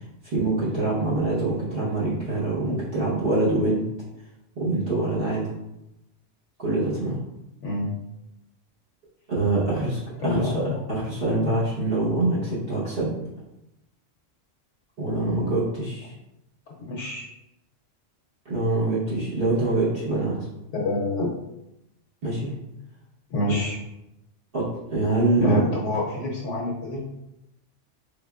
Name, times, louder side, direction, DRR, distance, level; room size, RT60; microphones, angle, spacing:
voice 1, 0.2-3.8 4.6-5.4 6.6-7.2 9.3-10.6 10.9-13.1 15.0-16.1 18.4-20.5 22.2-22.5 24.5-25.7, right 2 dB, 50° right, -9 dB, 1.1 m, -24 dB
voice 2, 10.2-10.8 16.8-17.3 20.7-21.3 23.3-23.8 25.4-27.0, left 2 dB, 75° left, -1 dB, 0.9 m, -27 dB
3.6 x 3.4 x 2.3 m, 0.88 s
omnidirectional pair, 1.3 m